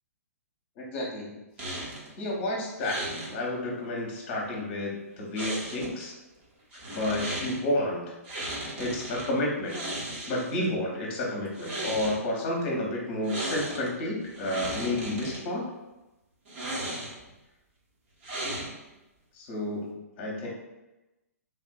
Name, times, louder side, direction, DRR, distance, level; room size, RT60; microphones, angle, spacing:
voice 1, 0.8-1.4 2.2-3.0 3.3-6.1 6.9-8.0 8.8-9.8 10.3-15.6 19.3-20.5, left 1 dB, 35° left, -2 dB, 0.9 m, -30 dB
sound 1, 1.6-2.1 2.8-3.3 5.3-6.0 6.7-7.6 8.2-9.3 9.6-10.6 11.5-12.2 13.2-13.9 14.2-15.4 16.5-17.3 18.2-18.9, right 1 dB, 45° right, 1.0 m, -35 dB
3.4 x 2.5 x 2.3 m, 1.0 s
figure-of-eight pair, 120°, 8 cm